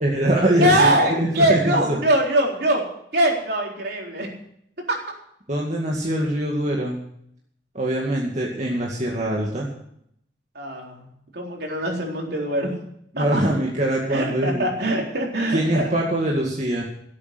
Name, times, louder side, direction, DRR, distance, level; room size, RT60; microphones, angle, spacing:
voice 1, 0.0-2.0 5.5-7.0 7.7-9.7 13.1-14.7 15.5-16.8, right 1 dB, 40° right, -2 dB, 2.2 m, -23 dB
voice 2, 0.6-2.8 3.1-4.3 4.9-5.0 10.5-11.1 11.3-12.7 13.2-13.4 14.1-15.9, right 1 dB, 60° right, 0 dB, 3.9 m, -22 dB
17.5 x 8.7 x 6.1 m, 0.71 s
head